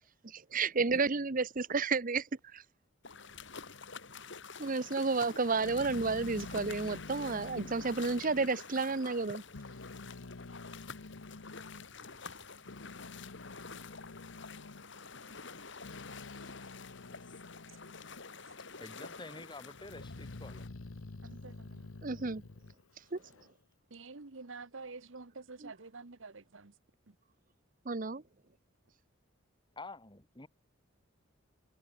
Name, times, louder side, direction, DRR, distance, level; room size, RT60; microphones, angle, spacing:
voice 1, 0.2-2.3 2.5-2.6 4.6-9.4 22.0-22.4 23.1-23.2 25.6-25.7 27.9-28.2, right 4 dB, 40° right, 0.9 m, -31 dB
sound 1, 3.0-20.7, left 5 dB, 60° left, 3.5 m, -48 dB
Growling, 5.5-9.2 9.5-11.9 12.4-18.2 18.6-19.3 19.7-23.5, left 2 dB, 90° left, 1.0 m, -49 dB
voice 2, 18.8-20.6 29.8-30.5, left 2 dB, 20° left, 2.0 m, -48 dB
voice 3, 21.2-21.9 23.9-26.7 27.1-27.2, right 4 dB, 70° right, 1.2 m, -48 dB
head